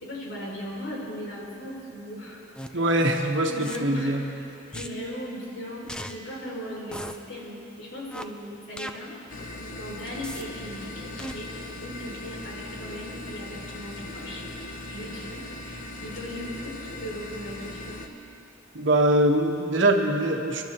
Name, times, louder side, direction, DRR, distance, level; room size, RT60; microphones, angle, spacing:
voice 1, 0.0-2.4 2.7-2.8 3.5-4.2 4.7-9.2 9.5-11.5 11.8-14.4 14.9-18.0, equal, 70° left, -4 dB, 3.9 m, -38 dB
sound 1, 2.5-2.7 3.6-3.8 4.7-4.9 5.9-6.1 6.9-7.2 8.1-8.2 8.8-8.9 10.2-10.4 11.2-11.3, equal, 5° left, 0.5 m, -36 dB
voice 2, 2.7-4.2 18.7-20.6, right 1 dB, 65° right, 2 dB, 1.3 m, -22 dB
sound 2, 9.3-18.1, left 2 dB, 45° left, 0.9 m, -39 dB
30.0 x 12.5 x 3.0 m, 2.8 s
head